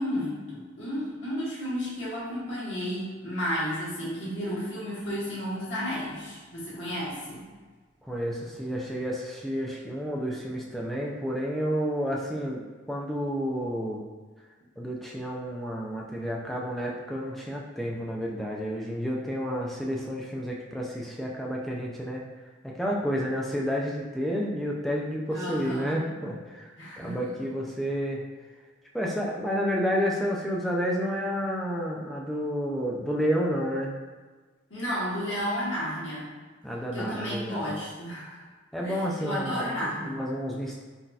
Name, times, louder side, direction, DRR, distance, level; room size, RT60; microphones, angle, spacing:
voice 1, 0.0-7.4 25.3-26.0 26.8-27.4 34.7-36.3 36.9-38.4 38.8-40.2, equal, 75° left, -7 dB, 1.2 m, -32 dB
voice 2, 8.1-12.6 12.9-14.0 14.8-22.2 22.6-28.2 28.9-33.9 36.6-37.7 38.7-40.8, equal, ahead, -3 dB, 0.3 m, -30 dB
3.9 x 2.7 x 2.3 m, 1.4 s
head